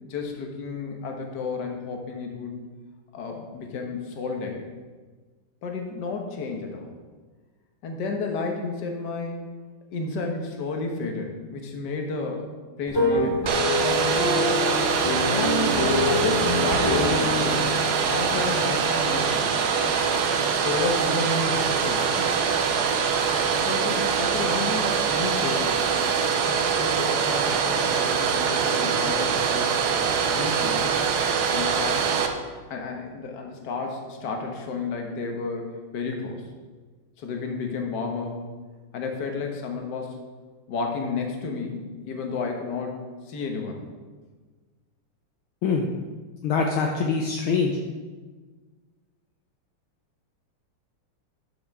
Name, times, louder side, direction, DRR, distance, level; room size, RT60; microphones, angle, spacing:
voice 1, 0.0-2.6 3.1-4.6 5.6-6.9 7.8-9.4 9.9-12.5 12.8-13.5 15.3-17.7 18.1-19.7 20.6-22.4 23.6-25.9 26.4-29.8 30.3-30.8 31.5-32.1 32.7-36.5 37.2-38.5 38.9-40.2 40.7-43.9, left 4 dB, 55° left, 2 dB, 1.6 m, -32 dB
sound 1, 12.9-18.8, left 2 dB, 25° left, 0.5 m, -26 dB
Domestic sounds home sounds, 13.4-32.3, right 6 dB, 65° right, 1.0 m, -24 dB
voice 2, 46.4-47.8, left 5 dB, 75° left, 1 dB, 1.5 m, -24 dB
12.0 x 6.2 x 3.6 m, 1.4 s
omnidirectional pair, 2.4 m